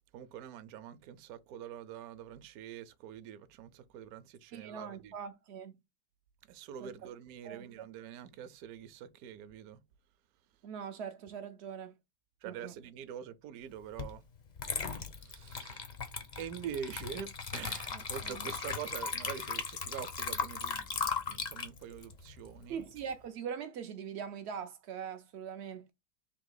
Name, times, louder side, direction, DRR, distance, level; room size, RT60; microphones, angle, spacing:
voice 1, 0.1-5.1 6.4-9.8 12.4-14.2 14.9-15.8 16.4-22.9, right 9 dB, 70° right, 1.0 m, -45 dB
voice 2, 4.5-5.8 6.8-7.1 7.4-7.7 10.6-12.0 12.4-12.7 17.9-18.5 22.7-25.9, right 7 dB, 90° right, 0.5 m, -42 dB
Water / Liquid, 14.0-14.1 14.6-23.1, left 5 dB, 75° left, 0.4 m, -38 dB
3.6 x 2.8 x 3.9 m
omnidirectional pair, 1.8 m